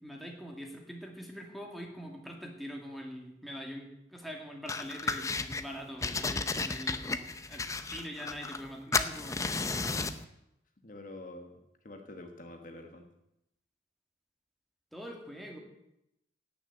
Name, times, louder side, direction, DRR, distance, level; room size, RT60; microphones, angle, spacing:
voice 1, 0.0-7.6 7.9-9.5 14.9-15.6, equal, ahead, 0 dB, 2.3 m, -43 dB
sound 1, 4.7-5.6 6.0-8.7 8.9-10.2, left 3 dB, 15° left, 0.6 m, -33 dB
voice 2, 10.8-11.6 11.8-13.1, left 2 dB, 45° left, 4 dB, 1.3 m, -46 dB
17.5 x 6.6 x 8.0 m, 0.84 s
head